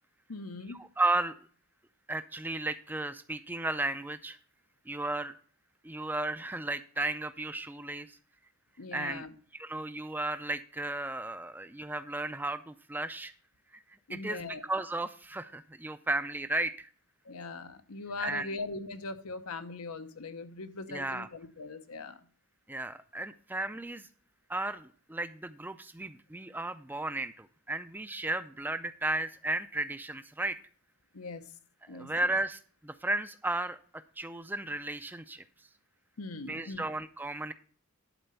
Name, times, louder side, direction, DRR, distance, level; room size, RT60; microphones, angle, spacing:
voice 1, 0.3-0.8 8.8-9.3 14.1-14.6 17.2-22.2 31.1-31.5 31.9-32.3 36.2-36.8, left 3 dB, 90° left, 0.9 m, -41 dB
voice 2, 1.0-1.3 2.1-4.4 4.9-5.4 5.8-8.2 8.9-9.3 9.5-13.3 13.7-13.8 14.1-16.9 18.2-18.5 20.9-21.3 22.7-24.1 24.5-30.6 31.8-35.4 36.5-37.5, right 2 dB, 10° right, 0.4 m, -34 dB
11.5 x 4.3 x 6.8 m
head